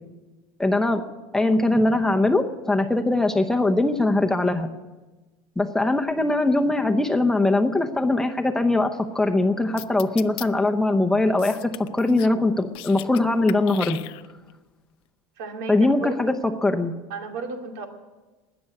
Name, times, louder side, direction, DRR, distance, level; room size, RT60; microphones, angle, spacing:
voice 1, 0.6-1.0 1.3-4.7 5.6-14.0 15.7-16.9, left 2 dB, 5° left, 4 dB, 0.8 m, -21 dB
sound 1, 9.8-10.5 11.4-12.4 12.6-13.2 13.5-14.5, left 19 dB, 55° left, 0.5 m, -37 dB
voice 2, 15.4-16.4 17.1-17.9, right 4 dB, 70° right, 3 dB, 2.5 m, -34 dB
19.5 x 7.0 x 9.5 m, 1.2 s
supercardioid pair, 130°, 11 cm